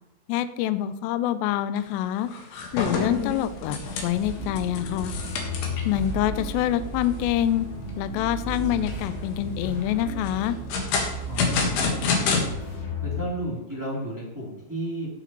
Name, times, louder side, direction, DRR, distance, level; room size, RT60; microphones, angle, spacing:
voice 1, 0.3-2.3 2.7-5.2 5.9-7.7 8.0-10.6, left 12 dB, 90° left, 12 dB, 2.4 m, -26 dB
sound 1, 1.8-1.9 2.3-6.0 6.5-6.6 7.0-7.1 7.6-8.0 8.6-9.2 10.2-12.4, left 5 dB, 65° left, 3.5 m, -28 dB
sound 2, 2.7-12.3, right 7 dB, 80° right, 3.0 m, -42 dB
sound 3, 4.1-13.2, left 1 dB, 50° left, 4.0 m, -34 dB
voice 2, 11.3-12.2 13.0-15.1, right 1 dB, 5° right, -6 dB, 2.1 m, -33 dB
15.5 x 7.9 x 3.1 m, 0.90 s
omnidirectional pair, 5.5 m